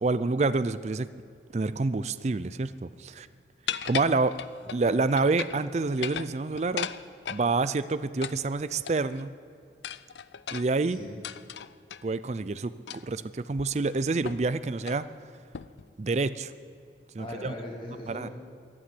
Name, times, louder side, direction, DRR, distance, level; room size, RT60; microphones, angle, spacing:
voice 1, 0.0-1.1 1.5-3.3 3.8-4.3 4.7-6.9 7.3-9.4 10.5-11.0 12.0-12.7 13.0-15.1 16.0-16.5 17.1-17.5 18.1-18.3, right 3 dB, 40° right, 14 dB, 0.4 m, -27 dB
sound 1, 3.7-4.8 5.2-5.6 5.9-7.5 8.2-9.2 9.8-12.0 12.9-13.2 13.6-13.7 14.2-14.5 14.8-15.0 15.5-15.9, left 8 dB, 80° left, 0.5 m, -37 dB
voice 2, 10.8-11.2 17.2-18.3, left 1 dB, 25° left, -3 dB, 2.0 m, -40 dB
14.5 x 10.5 x 9.7 m, 2.4 s
head